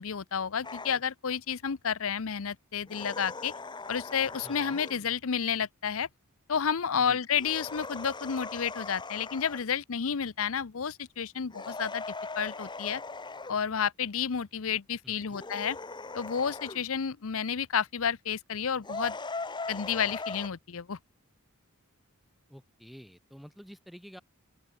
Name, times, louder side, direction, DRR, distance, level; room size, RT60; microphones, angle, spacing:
voice 1, 0.0-3.5 3.9-6.1 6.5-12.0 12.4-13.0 13.5-15.8 16.1-19.2 19.7-21.0, left 7 dB, 65° left, 0.7 m, -31 dB
sound 1, 0.6-1.0 2.9-5.1 7.3-9.7 11.5-13.6 15.3-16.8 18.8-20.5, left 3 dB, 20° left, 1.3 m, -40 dB
voice 2, 4.4-4.8 7.0-7.2 15.0-15.4 22.5-24.2, equal, ahead, 1.8 m, -49 dB
open air
head